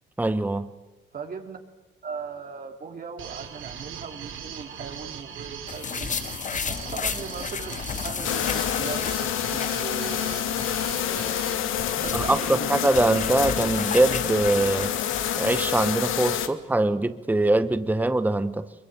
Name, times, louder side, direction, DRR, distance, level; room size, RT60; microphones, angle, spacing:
voice 1, 0.2-0.7 12.1-14.9 15.4-18.7, right 2 dB, 10° right, 1.0 m, -23 dB
voice 2, 1.1-1.6 2.0-6.2 6.6-10.6 11.8-12.9, right 5 dB, 45° right, 2.6 m, -38 dB
sound 1, 3.2-12.5, right 8 dB, 90° right, 2.9 m, -40 dB
sound 2, 5.7-10.2 10.5-10.6 11.5-15.9, left 7 dB, 40° left, 0.9 m, -33 dB
sound 3, 8.2-16.5, left 10 dB, 85° left, 1.5 m, -28 dB
23.0 x 22.5 x 9.0 m
cardioid pair, 90°, 20 cm